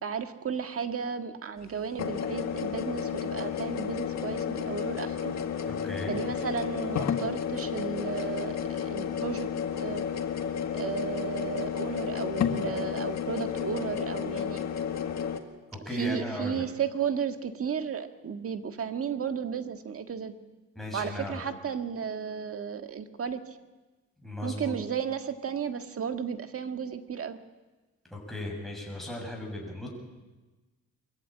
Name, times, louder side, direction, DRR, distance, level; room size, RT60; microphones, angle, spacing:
voice 1, 0.0-5.3 6.1-9.5 9.8-10.0 10.7-14.6 15.9-20.3 20.9-23.6 24.4-27.4, right 7 dB, 50° right, 7 dB, 1.7 m, -34 dB
sound 1, 1.6-1.7 2.0-15.4, left 8 dB, 60° left, 1.9 m, -32 dB
voice 2, 5.7-6.2 15.7-16.6 20.8-21.4 24.2-24.7 28.1-29.9, left 1 dB, ahead, -1 dB, 7.3 m, -36 dB
23.5 x 14.5 x 8.9 m, 1.2 s
cardioid pair, 90°, 30 cm